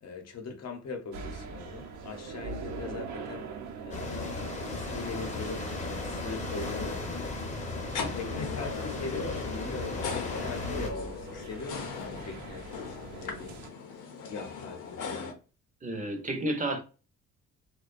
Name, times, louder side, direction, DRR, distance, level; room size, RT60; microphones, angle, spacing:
voice 1, 0.0-3.5 3.8-7.4 8.1-13.6 14.3-15.3, left 4 dB, 55° left, 0.8 m, -41 dB
sound 1, 1.1-13.7, right 4 dB, 70° right, 0.6 m, -43 dB
sound 2, 3.9-10.9, left 3 dB, 25° left, 0.7 m, -36 dB
sound 3, 6.7-15.3, left 5 dB, 90° left, 0.7 m, -39 dB
voice 2, 15.8-16.8, right 1 dB, 25° right, 0.6 m, -31 dB
2.4 x 2.2 x 2.4 m
cardioid pair, 90°, 30 cm